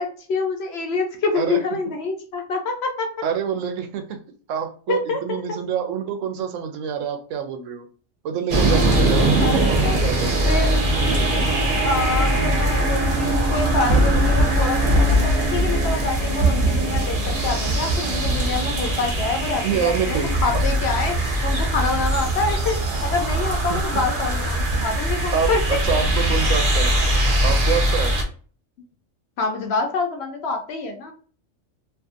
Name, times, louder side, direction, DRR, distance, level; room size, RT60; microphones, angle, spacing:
voice 1, 0.0-3.1 4.9-5.6 9.4-10.0 10.5-10.7 11.8-21.2 21.4-25.8 29.4-31.1, left 3 dB, 65° left, 3 dB, 0.7 m, -26 dB
voice 2, 3.2-4.2 4.5-7.8 8.2-10.6 11.0-11.2 19.6-20.6 23.7-23.8 25.3-26.9 27.4-28.1, right 7 dB, 75° right, 7 dB, 0.9 m, -27 dB
sound 1, 8.5-28.2, right 1 dB, 50° right, 0.8 m, -21 dB
2.6 x 2.5 x 2.5 m, 0.41 s
omnidirectional pair, 1.4 m